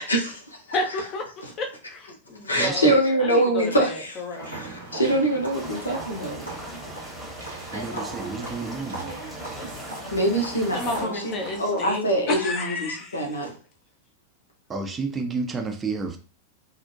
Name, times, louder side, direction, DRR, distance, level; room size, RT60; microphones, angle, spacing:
voice 1, 0.0-0.6 1.4-1.5 2.4-6.4 10.1-11.3 11.6-13.5, right 1 dB, 75° left, 0.6 m, -24 dB
voice 2, 0.7-1.3 1.6-2.9 3.2-4.5 10.7-13.3, left 2 dB, 30° left, 0.6 m, -31 dB
voice 3, 2.6-3.0 7.7-9.1 14.7-16.2, right 4 dB, 20° right, 0.4 m, -30 dB
sound 1, 4.3-11.6, right 2 dB, 75° right, 0.9 m, -38 dB
sound 2, 5.5-11.1, equal, 5° left, 1.0 m, -40 dB
2.4 x 2.1 x 2.6 m
figure-of-eight pair, 90°, 0 cm